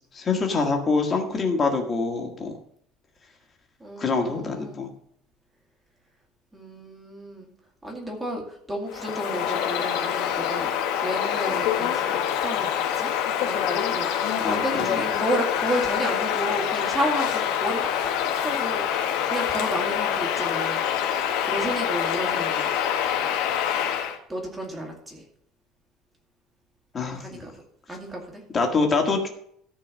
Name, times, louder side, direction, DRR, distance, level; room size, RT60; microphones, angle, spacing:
voice 1, 0.1-2.5 4.0-4.9 14.4-14.6 15.0-15.1 26.9-27.4 28.5-29.3, left 4 dB, 20° left, 2 dB, 1.7 m, -25 dB
voice 2, 3.8-4.8 6.5-7.5 7.8-10.7 11.0-12.7 12.9-13.1 13.4-14.1 14.5-17.9 18.2-20.8 21.5-22.7 24.3-25.2 27.2-27.5 27.9-28.4, equal, 10° right, 0 dB, 2.3 m, -32 dB
Bird vocalization bird call bird song, 8.9-24.2, left 9 dB, 75° left, 1.4 m, -26 dB
13.5 x 4.6 x 7.3 m, 0.68 s
cardioid pair, 175°, 0 cm